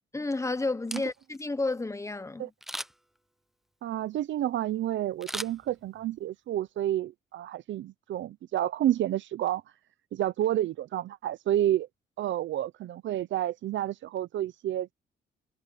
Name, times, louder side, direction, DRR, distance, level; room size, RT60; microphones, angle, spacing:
voice 1, 0.1-2.5, left 3 dB, 15° left, 1.0 m, -31 dB
Camera, 0.7-1.5 2.6-3.2 5.2-6.2 6.6-6.7, equal, ahead, 0.6 m, -38 dB
voice 2, 3.8-9.6 10.1-11.9 12.2-14.9, right 12 dB, 70° right, 0.7 m, -30 dB
cardioid pair, 90°, 20 cm